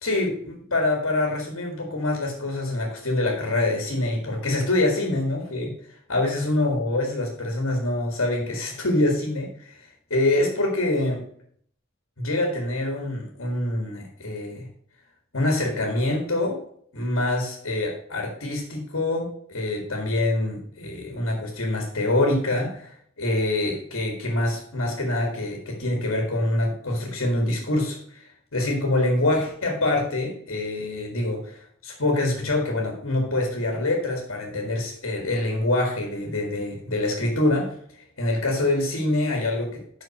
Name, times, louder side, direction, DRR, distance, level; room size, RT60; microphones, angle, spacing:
voice 1, 0.0-5.7 6.1-9.7 10.1-11.2 12.2-14.7 15.3-16.6 16.9-28.2 28.5-37.7 38.2-39.8, left 2 dB, 75° left, 1 dB, 1.8 m, -25 dB
5.8 x 5.7 x 6.4 m, 0.62 s
head